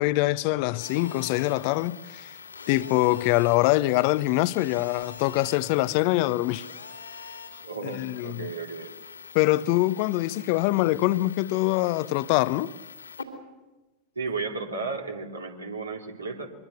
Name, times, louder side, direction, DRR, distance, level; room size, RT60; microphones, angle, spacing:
voice 1, 0.0-2.3 2.7-6.7 7.8-8.5 9.3-12.7, left 18 dB, 45° left, 0.8 m, -24 dB
Telephone, 0.8-13.2, left 5 dB, 80° left, 2.9 m, -44 dB
voice 2, 7.6-8.9 14.1-16.5, right 4 dB, 80° right, 3.2 m, -34 dB
24.0 x 23.0 x 6.8 m
figure-of-eight pair, 90°, 0 cm